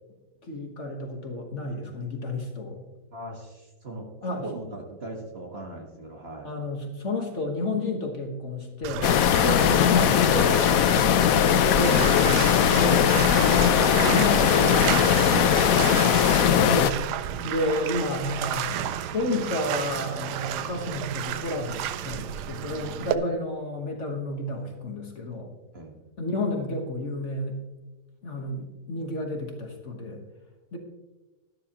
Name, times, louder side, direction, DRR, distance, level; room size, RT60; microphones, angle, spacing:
voice 1, 0.5-2.8 4.2-4.5 6.4-10.9 11.7-15.8 16.3-25.5 26.2-27.6 28.2-30.2 30.7-30.8, left 1 dB, 45° left, 2 dB, 1.5 m, -31 dB
voice 2, 3.1-3.5 3.8-4.1 4.4-6.5 11.5-12.0 25.7-25.9, right 1 dB, 40° right, 0 dB, 1.7 m, -39 dB
Bathtub (filling or washing), 8.8-23.1, right 11 dB, 75° right, 1.1 m, -32 dB
sound 1, 9.0-16.9, left 9 dB, 65° left, 0.9 m, -20 dB
13.0 x 12.0 x 2.9 m, 1.1 s
omnidirectional pair, 1.8 m